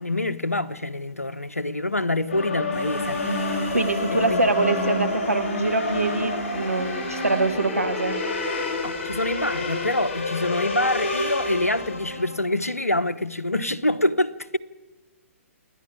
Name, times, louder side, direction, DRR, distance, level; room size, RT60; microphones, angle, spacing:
voice 1, 0.0-3.2 4.1-4.4 8.8-14.6, left 1 dB, 85° left, 1.0 m, -26 dB
sound 1, 2.3-12.4, left 2 dB, 45° left, 7.5 m, -29 dB
Human voice, 2.7-12.1, left 3 dB, 20° left, 5.0 m, -40 dB
voice 2, 3.7-8.2, right 2 dB, 80° right, 2.1 m, -24 dB
28.0 x 11.0 x 8.7 m
figure-of-eight pair, 125°, 8 cm